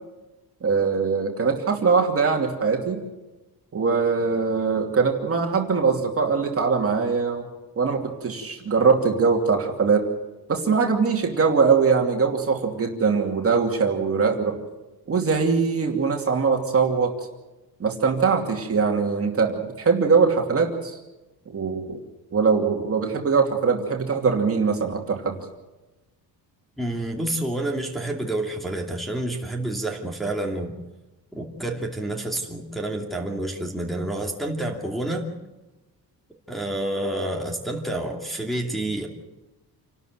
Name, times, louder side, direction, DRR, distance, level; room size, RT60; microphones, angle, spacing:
voice 1, 0.6-3.0 3.7-7.5 7.8-10.1 10.5-14.6 15.1-17.1 17.8-21.0 21.5-22.0 22.3-25.4, right 5 dB, 35° right, 2 dB, 2.7 m, -22 dB
voice 2, 26.8-30.7 31.3-35.3 36.5-39.1, right 1 dB, ahead, -2 dB, 2.7 m, -29 dB
28.0 x 12.5 x 7.9 m, 1.1 s
cardioid pair, 145°, 38 cm